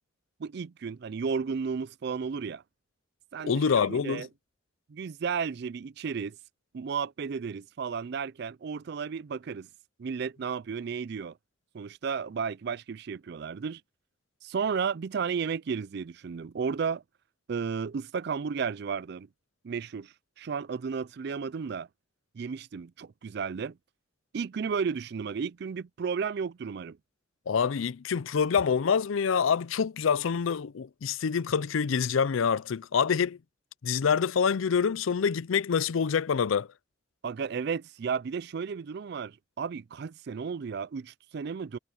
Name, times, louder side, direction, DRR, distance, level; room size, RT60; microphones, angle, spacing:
voice 1, 0.4-2.6 3.3-4.3 4.9-6.4 6.7-9.7 10.0-11.4 11.7-13.8 14.4-17.0 17.5-19.3 19.6-21.9 22.3-23.8 24.3-27.0 37.2-41.8, right 6 dB, 55° right, 0.4 m, -33 dB
voice 2, 3.4-4.3 27.5-33.4 33.8-36.7, left 6 dB, 85° left, 0.5 m, -26 dB
head